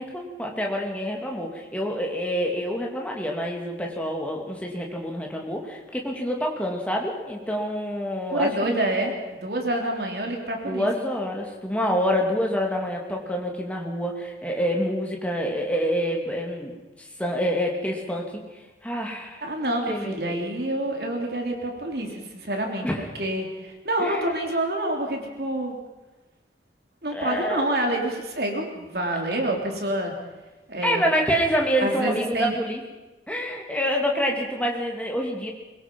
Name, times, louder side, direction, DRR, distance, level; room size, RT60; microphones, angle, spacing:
voice 1, 0.0-8.9 10.6-16.7 17.2-18.4 18.8-19.4 19.9-20.4 22.8-23.1 24.0-24.3 27.1-27.6 30.8-32.8 33.3-35.5, equal, 10° left, 0 dB, 2.9 m, -27 dB
voice 2, 8.3-9.1 9.4-10.9 19.4-22.9 23.2-25.8 27.0-30.1 30.7-31.0 31.8-32.5, right 1 dB, 60° right, 2 dB, 3.5 m, -27 dB
23.5 x 22.0 x 5.5 m, 1.1 s
head